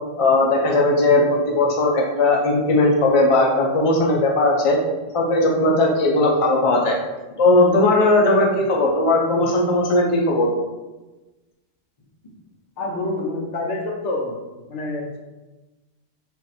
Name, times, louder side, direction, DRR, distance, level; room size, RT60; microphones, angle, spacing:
voice 1, 0.2-1.2 1.5-4.8 5.1-7.0 7.4-10.5, left 2 dB, 35° left, -1 dB, 0.5 m, -18 dB
voice 2, 12.8-14.4 14.7-15.2, left 2 dB, 65° left, 1 dB, 0.9 m, -27 dB
3.8 x 2.7 x 4.1 m, 1.1 s
omnidirectional pair, 1.4 m